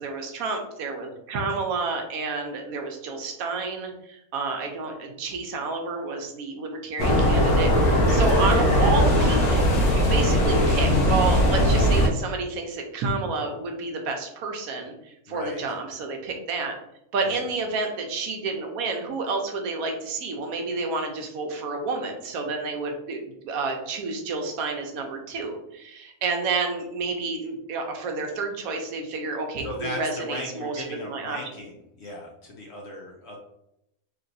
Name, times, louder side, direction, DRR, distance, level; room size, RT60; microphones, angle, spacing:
voice 1, 0.0-16.8 17.1-31.4, right 3 dB, 80° right, 3 dB, 1.0 m, -30 dB
sound 1, 7.0-12.1, equal, 85° left, 1.2 m, -19 dB
voice 2, 8.0-8.3 15.3-15.6 17.2-17.5 29.6-31.7 32.0-33.4, left 1 dB, 60° left, -1 dB, 0.7 m, -37 dB
3.2 x 2.8 x 2.5 m, 0.82 s
omnidirectional pair, 1.5 m